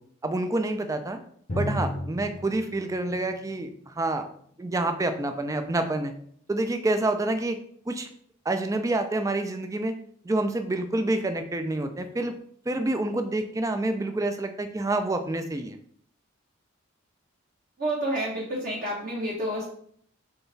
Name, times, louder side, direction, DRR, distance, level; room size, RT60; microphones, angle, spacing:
voice 1, 0.2-1.2 1.5-4.2 4.6-6.1 6.5-7.6 7.9-8.1 8.5-9.9 10.2-12.3 12.7-15.8, right 2 dB, 15° right, 8 dB, 0.3 m, -27 dB
Drum, 1.5-5.0, left 1 dB, 35° left, 0.7 m, -35 dB
voice 2, 17.8-19.6, right 1 dB, 40° right, -4 dB, 1.0 m, -29 dB
3.8 x 3.4 x 3.9 m, 0.62 s
head